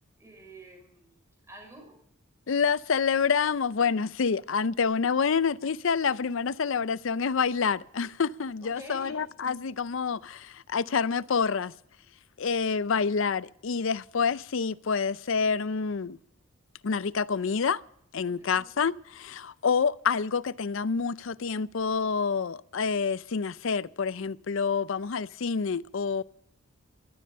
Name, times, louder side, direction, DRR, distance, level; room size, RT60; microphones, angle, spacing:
voice 1, 0.2-1.2 1.5-2.0 8.6-9.3 18.3-18.7 25.0-25.1, right 1 dB, 15° right, 5.3 m, -48 dB
voice 2, 2.5-11.7 12.4-16.2 16.8-17.8 18.1-26.2, left 5 dB, 65° left, 0.5 m, -27 dB
16.5 x 13.5 x 5.5 m
head